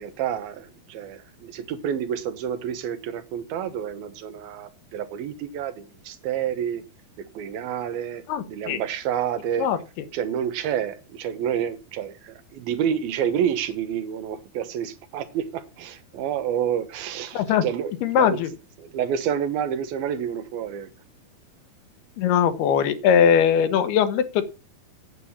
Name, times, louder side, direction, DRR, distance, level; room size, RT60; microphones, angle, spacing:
voice 1, 0.0-6.8 7.2-9.7 10.1-17.9 18.2-18.4 18.8-20.9, right 9 dB, 75° right, 2.9 m, -29 dB
voice 2, 8.3-8.8 9.6-9.8 17.3-17.6 18.0-18.5 22.2-24.4, left 8 dB, 85° left, 3.1 m, -20 dB
9.1 x 8.3 x 7.1 m
omnidirectional pair, 4.4 m